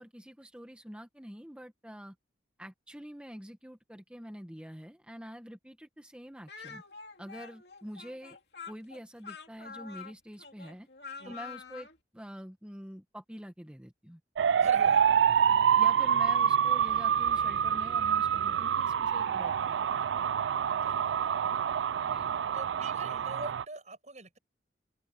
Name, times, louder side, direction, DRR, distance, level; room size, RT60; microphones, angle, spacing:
voice 1, 0.0-2.1 2.6-6.8 7.2-8.4 8.7-10.9 11.2-11.9 12.1-14.2 15.8-19.9 22.0-22.3, equal, 5° right, 1.3 m, -46 dB
Speech, 6.5-12.0, left 5 dB, 65° left, 2.7 m, -46 dB
sound 1, 14.4-23.6, right 8 dB, 85° right, 0.4 m, -27 dB
voice 2, 14.6-15.1 20.8-21.1 22.5-24.4, right 2 dB, 40° right, 7.2 m, -44 dB
open air
head